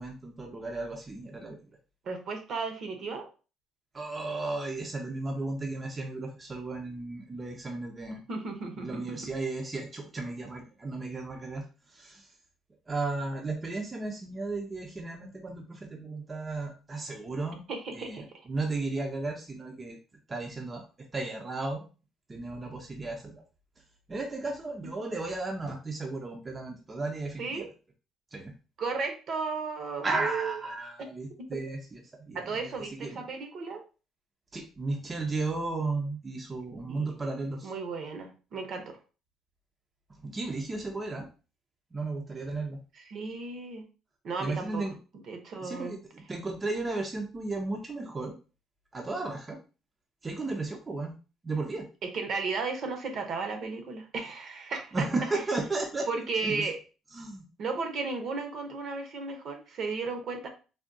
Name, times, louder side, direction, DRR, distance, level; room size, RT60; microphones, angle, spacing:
voice 1, 0.0-1.6 3.9-8.2 8.8-11.6 11.9-12.3 12.9-17.6 18.0-18.2 18.5-20.0 20.3-20.9 21.1-21.8 22.3-23.4 24.1-27.7 28.3-28.5 30.0-32.7 33.0-33.2 34.5-37.7 40.2-41.3 41.9-42.8 44.4-45.0 45.6-48.3 48.9-49.6 50.2-51.1 51.4-51.9 54.9-56.6 57.1-57.4, right 3 dB, 25° right, 1 dB, 0.5 m, -34 dB
voice 2, 2.0-3.3 8.3-9.2 17.7-18.4 27.4-27.7 28.8-30.6 31.4-31.6 32.3-33.8 36.8-37.1 37.6-39.0 42.9-43.8 44.2-44.8 45.3-45.9 52.0-55.1 56.1-56.8 57.6-60.5, right 4 dB, 55° right, 5 dB, 0.7 m, -34 dB
3.5 x 2.2 x 2.5 m, 0.33 s
cardioid pair, 120°, 0 cm